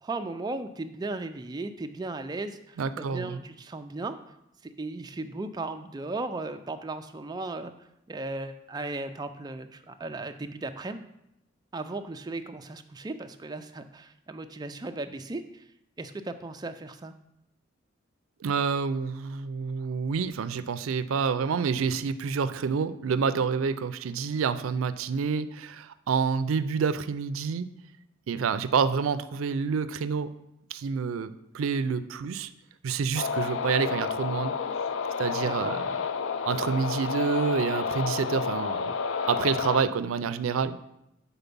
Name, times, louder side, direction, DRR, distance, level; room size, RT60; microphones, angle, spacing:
voice 1, 0.0-4.2 4.6-7.7 8.1-11.0 11.7-15.6 16.0-17.1 35.4-35.8, right 2 dB, 20° right, 8 dB, 0.3 m, -36 dB
voice 2, 2.8-3.4 18.4-27.7 28.3-30.3 30.7-32.5 32.8-34.6 35.2-35.9 36.4-38.9 39.3-40.8, right 6 dB, 85° right, 13 dB, 0.4 m, -28 dB
sound 1, 33.2-39.8, left 6 dB, 70° left, 0.4 m, -30 dB
6.9 x 4.2 x 5.3 m, 0.84 s
head